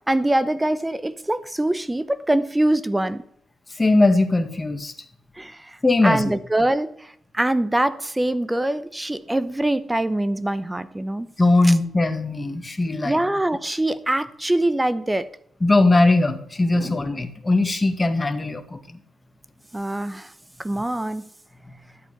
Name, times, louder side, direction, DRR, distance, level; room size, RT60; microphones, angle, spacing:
voice 1, 0.1-3.2 5.4-5.6 6.0-6.9 7.3-11.3 11.6-11.7 13.0-15.3 16.8-17.0 19.7-20.3 20.6-21.2, right 1 dB, 15° right, 0.9 m, -23 dB
voice 2, 3.8-4.9 5.8-6.3 11.4-13.2 15.6-19.0, left 2 dB, 25° left, 1.9 m, -20 dB
12.5 x 8.2 x 5.3 m
supercardioid pair, 60°, 0 cm